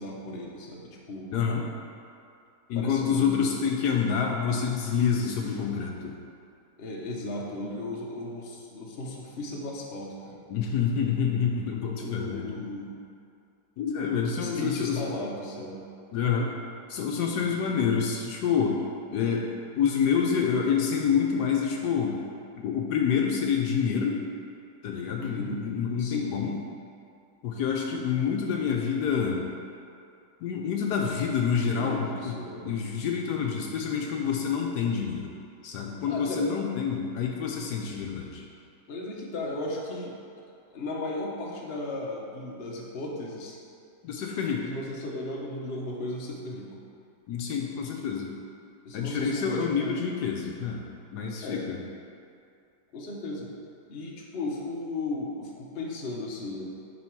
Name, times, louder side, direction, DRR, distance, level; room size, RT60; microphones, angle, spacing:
voice 1, 0.0-1.3 2.7-3.5 5.5-5.7 6.8-10.4 12.0-12.9 14.2-15.8 17.4-17.6 25.2-25.6 26.0-26.4 31.5-32.7 36.1-36.5 38.9-40.2 40.7-43.6 44.6-46.7 48.8-50.1 51.4-51.6 52.9-53.5 53.9-56.6, left 2 dB, 45° left, -2 dB, 1.0 m, -36 dB
voice 2, 1.3-1.6 2.7-6.1 10.5-12.6 13.8-15.0 16.1-16.5 16.9-18.8 19.1-19.5 19.8-22.2 22.6-24.2 24.8-26.6 27.4-29.4 30.4-35.3 35.6-38.4 44.0-44.7 47.3-48.3 48.9-50.9 51.1-51.8, left 6 dB, 75° left, 0 dB, 1.2 m, -27 dB
10.5 x 3.5 x 4.5 m, 2.5 s
omnidirectional pair, 1.9 m